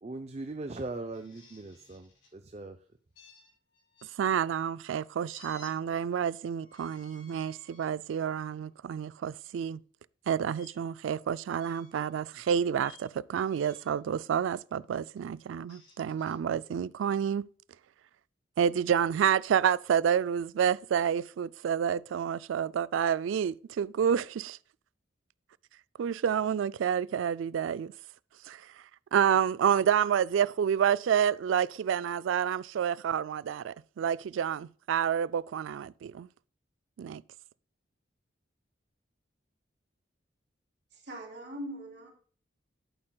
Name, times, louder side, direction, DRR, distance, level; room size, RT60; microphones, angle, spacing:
voice 1, 0.0-2.8, right 2 dB, 35° right, 0.6 m, -40 dB
sound 1, 1.1-2.3 3.1-4.1 5.3-5.7 6.6-7.9 8.5-8.7 10.5-10.7 11.6-12.1 12.8-13.1 13.5-14.0 15.4-16.4, left 3 dB, 75° left, 4.9 m, -56 dB
voice 2, 4.2-9.8 10.3-17.5 18.6-24.6 26.0-27.9 28.4-28.7 29.1-36.3 37.0-37.2, right 8 dB, 85° right, 0.3 m, -29 dB
voice 3, 40.9-42.1, right 1 dB, 65° right, 3.0 m, -41 dB
11.0 x 8.7 x 2.3 m
head